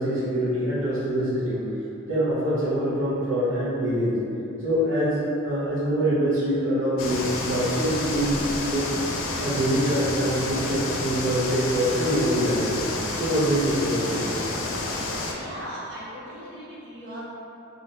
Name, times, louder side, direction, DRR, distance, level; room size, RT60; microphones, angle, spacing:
voice 1, 0.0-1.7 2.1-4.2 4.6-8.9 9.4-12.8 13.1-14.2 15.1-15.2, equal, 85° right, -9 dB, 0.8 m, -24 dB
sound 1, 7.0-15.3, left 2 dB, 85° left, 0.5 m, -29 dB
voice 2, 15.3-17.3, equal, 60° right, -8 dB, 1.0 m, -38 dB
3.7 x 2.5 x 3.8 m, 2.8 s
head